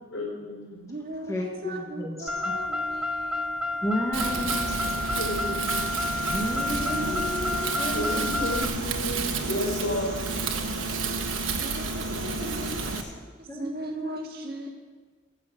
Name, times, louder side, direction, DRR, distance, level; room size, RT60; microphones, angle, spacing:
voice 1, 0.1-0.7 5.1-5.9 7.9-10.2, left 1 dB, 70° left, -1 dB, 4.3 m, -32 dB
voice 2, 0.7-3.8 6.7-8.0 8.2-8.3 11.4-14.7, right 1 dB, 50° right, 1 dB, 1.9 m, -39 dB
voice 3, 1.3-2.3 3.8-4.9 6.3-8.4 12.6-12.8 13.5-14.2, equal, 15° left, -1 dB, 1.4 m, -32 dB
Car, 2.3-8.7, left 2 dB, 5° right, 0.4 m, -30 dB
Wind, 4.1-13.0, right 4 dB, 90° right, 1.2 m, -30 dB
sound 1, 5.6-13.1, left 4 dB, 40° left, 1.6 m, -46 dB
15.5 x 6.8 x 7.6 m, 1.3 s
head